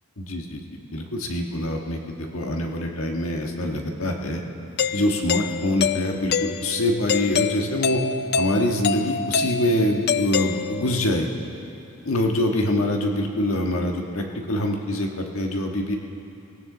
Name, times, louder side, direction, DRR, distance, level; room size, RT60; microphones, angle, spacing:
voice 1, 0.2-4.4 4.9-8.0 8.4-11.3 12.0-16.0, left 1 dB, 75° left, 2 dB, 1.5 m, -25 dB
Doorbell, 4.8-11.1, left 6 dB, 50° left, 0.4 m, -26 dB
18.5 x 17.0 x 3.9 m, 2.7 s
head